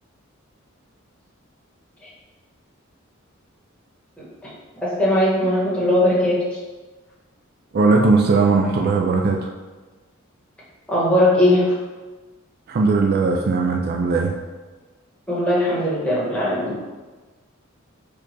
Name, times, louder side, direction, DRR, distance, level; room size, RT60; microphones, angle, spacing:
voice 1, 4.8-6.6 10.9-11.7 15.3-16.7, left 1 dB, 5° left, -9 dB, 1.3 m, -19 dB
voice 2, 7.7-9.5 12.7-14.3, right 4 dB, 50° right, 0 dB, 0.4 m, -18 dB
4.6 x 2.4 x 4.5 m, 1.3 s
head